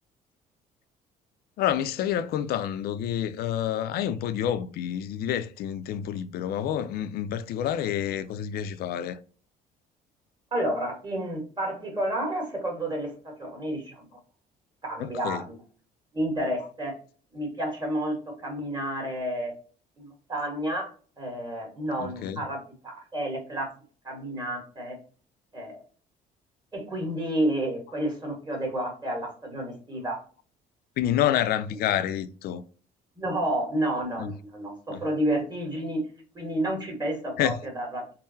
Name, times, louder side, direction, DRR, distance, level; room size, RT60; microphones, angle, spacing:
voice 1, 1.6-9.2 15.0-15.4 22.0-22.4 31.0-32.6 34.2-34.3 34.9-35.0 37.4-37.5, left 10 dB, 65° left, 0.4 m, -28 dB
voice 2, 10.5-14.1 14.8-15.6 16.1-17.0 17.3-19.5 20.0-20.9 21.2-23.7 24.0-25.0 25.5-25.8 26.7-30.2 33.2-36.0 36.3-38.1, right 1 dB, 25° right, 1.4 m, -30 dB
3.7 x 2.1 x 2.6 m
cardioid pair, 110°, 17 cm